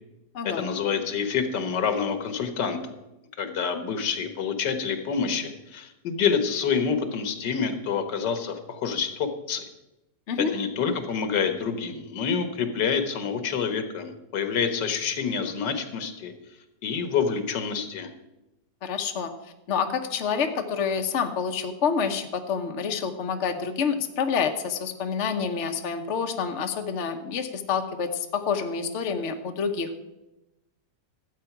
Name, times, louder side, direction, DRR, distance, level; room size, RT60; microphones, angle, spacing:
voice 1, 0.4-2.8 3.4-9.6 10.4-16.3 16.8-18.1, left 6 dB, 80° left, 8 dB, 1.8 m, -27 dB
voice 2, 18.8-19.3 19.7-29.9, left 6 dB, 50° left, 5 dB, 1.1 m, -28 dB
13.0 x 8.1 x 5.9 m, 0.96 s
omnidirectional pair, 1.8 m